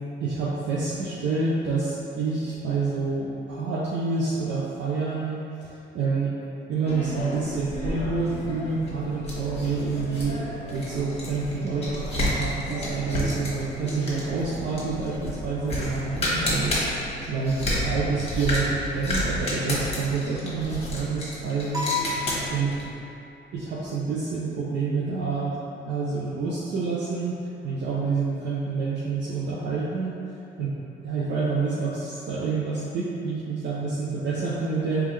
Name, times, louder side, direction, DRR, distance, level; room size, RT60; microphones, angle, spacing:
voice 1, 0.2-5.4 5.9-6.3 6.7-10.4 10.7-16.7 17.3-17.6 17.8-21.9 22.5-22.7 23.5-25.6 25.9-27.3 27.6-30.1 30.6-30.7 31.0-35.1, right 4 dB, 65° right, -6 dB, 0.6 m, -28 dB
Papaya sound, 6.8-22.9, left 1 dB, 30° left, 1.2 m, -31 dB
sound 1, 21.7-23.2, left 4 dB, 15° right, 0.7 m, -31 dB
3.5 x 3.1 x 3.2 m, 2.7 s
cardioid pair, 90°, 20 cm